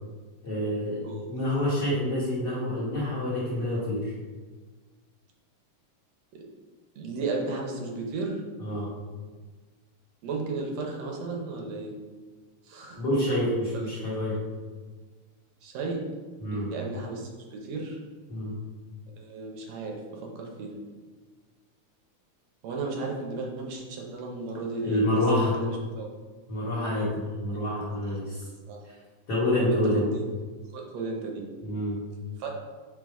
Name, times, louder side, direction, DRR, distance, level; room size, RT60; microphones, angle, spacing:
voice 1, 0.4-1.0 1.3-4.1 8.6-8.9 13.0-14.4 16.4-16.7 18.3-18.5 24.8-25.5 26.5-28.5 29.3-30.0 31.6-32.0, left 1 dB, 45° left, -9 dB, 1.6 m, -27 dB
voice 2, 7.0-8.4 10.2-11.9 12.7-13.0 13.7-13.8 15.6-16.0 16.5-18.0 19.2-20.7 22.6-26.1 28.7-28.8 29.6-30.2 30.7-31.4 32.4-32.5, right 3 dB, 70° right, 0 dB, 1.9 m, -34 dB
5.3 x 3.9 x 4.6 m, 1.4 s
omnidirectional pair, 3.4 m